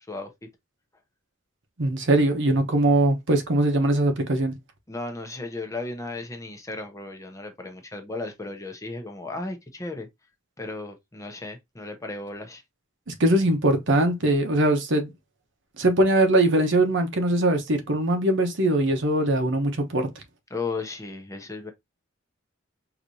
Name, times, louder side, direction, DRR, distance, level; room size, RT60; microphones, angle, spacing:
voice 1, 1.8-4.5 13.1-15.1 15.8-20.1, right 1 dB, 60° right, 0.9 m, -21 dB
voice 2, 4.9-10.1 10.6-12.6 20.5-21.7, left 3 dB, 15° left, 0.7 m, -35 dB
4.9 x 2.9 x 2.6 m
head